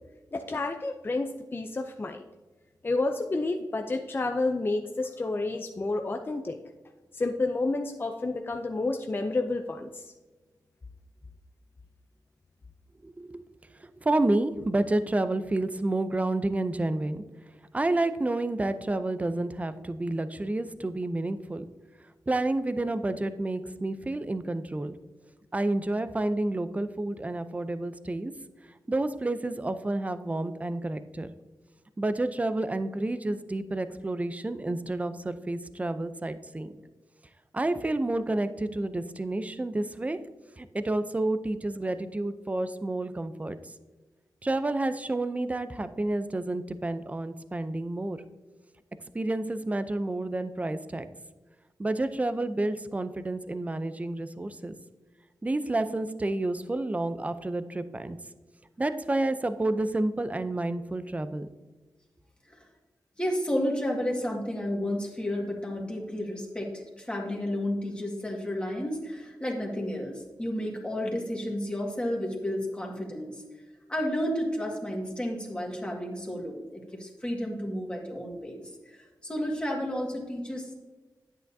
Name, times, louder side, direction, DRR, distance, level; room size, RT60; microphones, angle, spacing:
voice 1, 0.3-2.2 2.8-6.6 7.1-10.1, left 2 dB, 30° left, 4 dB, 0.5 m, -30 dB
voice 2, 13.0-13.5 13.8-17.2 17.7-21.6 22.3-24.9 25.5-28.3 28.9-31.3 32.0-36.7 37.5-40.2 40.6-43.7 44.4-48.2 49.1-51.1 51.8-54.8 55.4-58.2 58.8-61.5, right 2 dB, 20° right, 11 dB, 0.5 m, -30 dB
voice 3, 63.2-73.4 73.9-80.7, equal, 15° left, -1 dB, 1.8 m, -32 dB
10.0 x 9.0 x 2.7 m, 1.2 s
wide cardioid pair, 95°, 7 cm